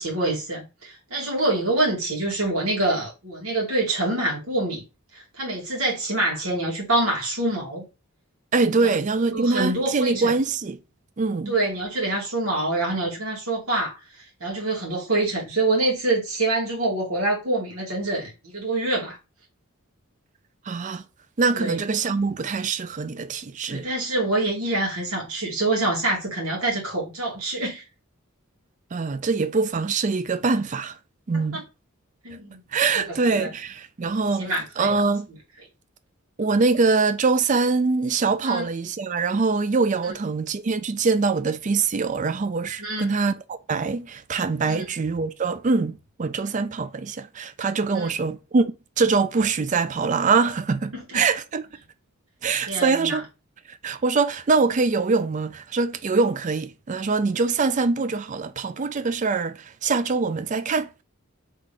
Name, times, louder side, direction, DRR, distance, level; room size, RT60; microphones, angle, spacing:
voice 1, 0.0-4.8 5.1-7.9 9.3-10.3 11.5-14.0 14.4-19.2 21.6-21.8 23.7-27.8 31.5-31.6 32.2-32.6 32.9-33.5 34.4-34.9 38.4-38.7 42.8-43.1 44.7-44.9 47.9-48.1 50.9-51.2 52.7-53.2, right 2 dB, 85° right, 2.5 m, -26 dB
voice 2, 8.5-10.8 11.2-11.5 20.7-21.0 21.4-23.9 28.9-31.0 31.3-31.6 32.7-35.3 36.4-51.6 52.4-53.2 53.7-61.0, right 4 dB, 35° right, 0.4 m, -23 dB
3.8 x 3.7 x 3.3 m
head